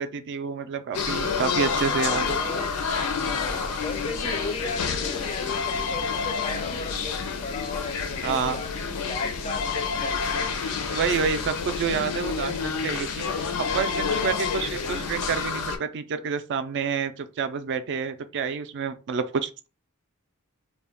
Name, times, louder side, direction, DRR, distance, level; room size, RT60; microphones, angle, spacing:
voice 1, 0.0-2.2 8.2-8.6 10.9-19.7, right 6 dB, 55° right, 0.3 m, -28 dB
sound 1, 0.9-15.8, left 5 dB, 90° left, 0.5 m, -28 dB
voice 2, 1.9-2.7 3.2-7.1 7.4-10.2, left 3 dB, 30° left, 0.4 m, -35 dB
2.3 x 2.1 x 3.5 m
head